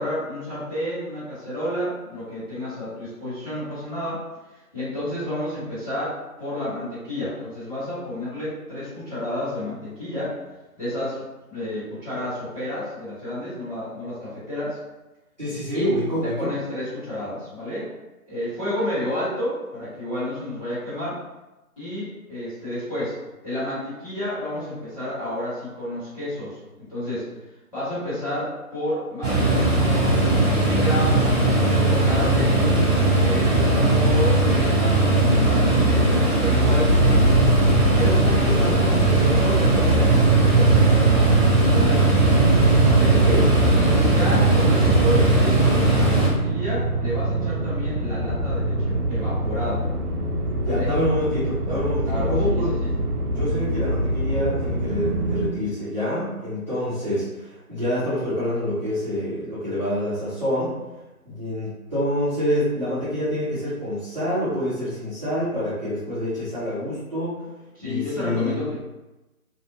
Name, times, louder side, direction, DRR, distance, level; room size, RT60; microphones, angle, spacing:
voice 1, 0.0-4.2 4.7-10.4 10.8-11.2 11.5-14.8 15.7-15.9 16.2-17.9 18.2-21.2 21.8-23.2 23.4-27.3 27.7-32.7 33.2-36.0 36.4-37.5 37.8-42.1 42.9-43.2 43.8-49.9 50.7-50.9 52.0-53.0 67.7-68.8, left 1 dB, 25° left, -15 dB, 1.3 m, -30 dB
voice 2, 15.4-16.5 33.5-34.0 43.0-43.5 50.6-52.7 53.3-60.8 61.2-67.4 67.8-68.6, left 1 dB, 30° right, -13 dB, 0.8 m, -27 dB
sound 1, 29.2-46.3, right 1 dB, 5° left, 1.0 m, -19 dB
sound 2, 36.9-55.5, right 3 dB, 80° right, 0.5 m, -23 dB
2.5 x 2.1 x 2.8 m, 1.0 s
figure-of-eight pair, 155°, 45 cm